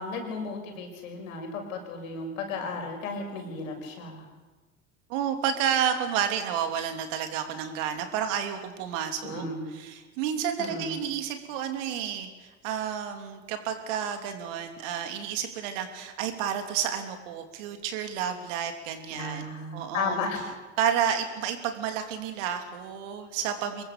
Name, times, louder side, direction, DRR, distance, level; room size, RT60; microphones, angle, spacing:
voice 1, 0.0-4.2 9.2-9.7 10.6-11.0 19.1-20.4, left 3 dB, 75° left, 3 dB, 6.4 m, -34 dB
voice 2, 5.1-9.5 9.7-20.2 20.8-23.8, right 8 dB, 65° right, 6 dB, 3.2 m, -30 dB
25.0 x 21.5 x 6.9 m, 1.3 s
hypercardioid pair, 75°, 40 cm